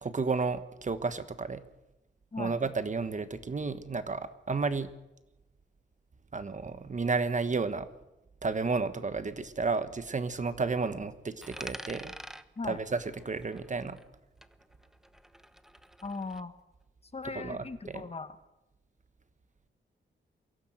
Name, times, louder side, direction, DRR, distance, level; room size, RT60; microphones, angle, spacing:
voice 1, 0.0-1.6 2.4-4.9 6.3-7.9 8.4-12.1 12.6-14.0 17.3-18.0, right 4 dB, 40° right, 11 dB, 1.3 m, -32 dB
Coin (dropping), 11.4-14.2 14.4-16.4, equal, ahead, 1.0 m, -47 dB
voice 2, 16.0-16.5 17.1-18.4, left 3 dB, 30° left, 11 dB, 1.4 m, -38 dB
23.5 x 16.0 x 7.9 m, 0.95 s
wide cardioid pair, 115°, 19 cm